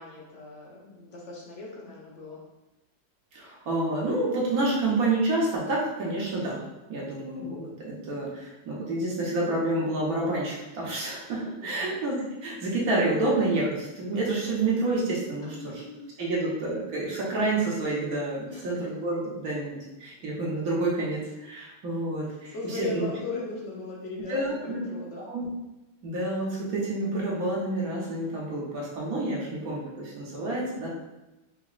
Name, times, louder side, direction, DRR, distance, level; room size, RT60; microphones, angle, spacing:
voice 1, 0.0-2.4 11.6-12.0 15.4-16.4 18.5-18.9 22.3-25.3, left 3 dB, 55° left, -4 dB, 0.8 m, -38 dB
voice 2, 3.3-6.6 6.9-15.8 16.2-23.1 24.3-24.9 25.3-25.5 26.0-30.9, right 2 dB, 55° right, -5 dB, 1.2 m, -29 dB
4.9 x 2.6 x 2.4 m, 1.0 s
omnidirectional pair, 2.1 m